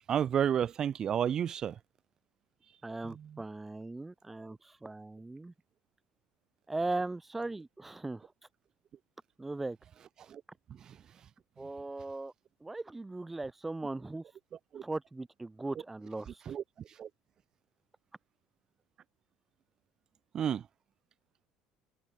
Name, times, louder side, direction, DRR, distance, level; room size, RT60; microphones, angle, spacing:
voice 1, 0.1-1.8 3.0-3.3 10.3-10.4 10.9-11.0 14.7-14.8 16.5-16.6 17.0-17.1 20.3-20.6, right 9 dB, 30° right, 1.8 m, -31 dB
voice 2, 2.8-5.5 6.7-8.3 9.4-9.8 11.6-12.3 12.6-14.2 14.8-16.4, right 2 dB, 10° right, 2.1 m, -38 dB
cardioid pair, 160°, 2 cm